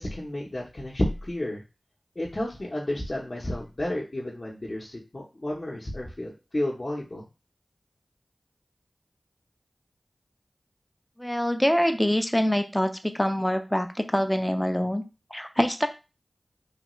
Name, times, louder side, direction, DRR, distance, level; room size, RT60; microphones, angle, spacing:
voice 1, 0.0-1.6 2.2-7.3, left 1 dB, 45° left, -4 dB, 0.7 m, -31 dB
voice 2, 11.2-12.9 13.1-15.0 15.3-15.9, equal, 10° left, 7 dB, 0.4 m, -24 dB
3.2 x 2.3 x 3.0 m, 0.29 s
wide cardioid pair, 45°, 0 cm